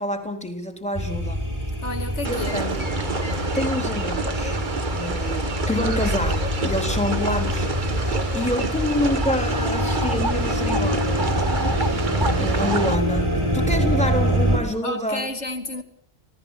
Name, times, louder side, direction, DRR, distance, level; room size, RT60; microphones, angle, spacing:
voice 1, 0.0-1.4 2.2-2.8 3.3-4.6 4.9-11.8 12.4-13.3 13.5-15.3 15.7-15.8, left 1 dB, 5° left, 3.7 m, -28 dB
sound 1, 0.9-14.6, equal, 20° right, 6.1 m, -25 dB
voice 2, 1.8-2.6 14.8-15.8, left 2 dB, 80° left, 2.7 m, -31 dB
sound 2, 2.2-13.0, right 3 dB, 45° right, 1.5 m, -28 dB
28.0 x 17.5 x 7.5 m
omnidirectional pair, 1.2 m